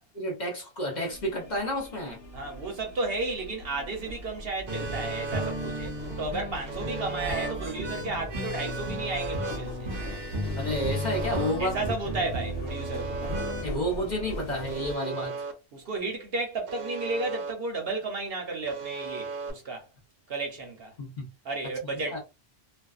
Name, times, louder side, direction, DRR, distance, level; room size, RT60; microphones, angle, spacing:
voice 1, 0.1-2.2 10.6-11.8 13.6-15.4 21.0-21.3 21.9-22.2, equal, 40° left, 0.8 m, -30 dB
sound 1, 1.1-15.0, equal, 70° left, 1.2 m, -40 dB
voice 2, 2.3-9.9 11.6-13.2 15.7-19.9 20.3-20.9 21.4-22.2, right 3 dB, 55° right, 0.8 m, -33 dB
sound 2, 4.7-13.6, equal, 30° right, 0.5 m, -34 dB
Alarm, 4.7-5.5 6.7-7.5 8.7-9.5 10.7-11.5 12.7-13.5 14.7-15.5 16.7-17.5 18.7-19.5, right 5 dB, 85° right, 0.9 m, -36 dB
2.5 x 2.3 x 2.3 m
omnidirectional pair, 1.3 m